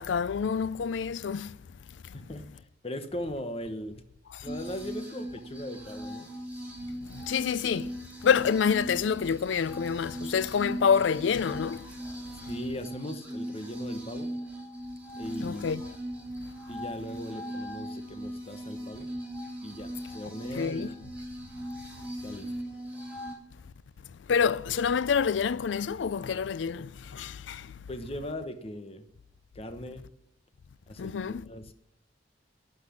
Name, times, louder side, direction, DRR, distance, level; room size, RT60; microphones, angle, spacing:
voice 1, 0.0-1.6 7.1-7.9 8.2-11.8 15.4-15.8 20.5-20.9 24.3-27.7 31.0-31.5, left 6 dB, 80° left, 0.4 m, -27 dB
voice 2, 2.1-4.0 4.4-6.3 12.4-14.3 15.2-15.8 16.7-19.1 19.6-20.8 22.2-22.5 27.9-29.1 29.5-30.0 30.9-31.7, left 1 dB, 30° left, 1.1 m, -39 dB
sound 1, 4.5-23.3, equal, 10° right, 3.2 m, -39 dB
11.5 x 6.1 x 8.8 m
head